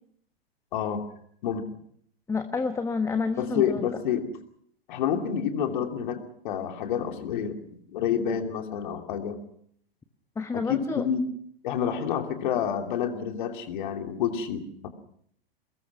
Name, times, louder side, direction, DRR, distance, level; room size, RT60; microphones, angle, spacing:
voice 1, 0.7-1.0 1.4-1.6 3.4-4.3 4.9-9.4 10.5-11.2 11.6-14.9, left 8 dB, 55° left, 5 dB, 2.9 m, -29 dB
voice 2, 2.3-3.9 10.4-11.1, left 4 dB, 10° left, 9 dB, 1.2 m, -29 dB
24.5 x 20.5 x 6.1 m, 0.66 s
figure-of-eight pair, 100°, 30 cm